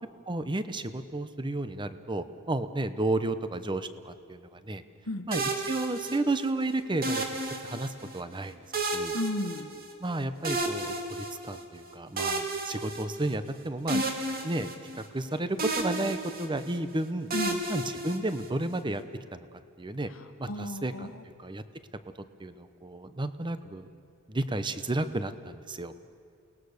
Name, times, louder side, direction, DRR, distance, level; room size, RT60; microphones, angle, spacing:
voice 1, 0.3-4.8 5.3-7.2 7.6-9.1 10.0-14.0 14.4-14.7 14.9-17.3 17.7-19.0 19.3-19.5 19.8-20.1 20.4-21.6 22.4-23.9 24.3-25.9, right 2 dB, 20° right, 11 dB, 0.8 m, -32 dB
sound 1, 5.3-6.5 7.0-8.2 8.7-10.1 10.4-11.6 12.2-13.5 13.9-15.3 15.6-16.8 17.3-18.7, right 2 dB, 45° right, 2.3 m, -32 dB
voice 2, 9.1-9.7 13.9-14.0 17.3-17.6 20.5-21.1, left 1 dB, 65° left, 9 dB, 1.3 m, -33 dB
29.0 x 19.5 x 6.6 m, 2.4 s
head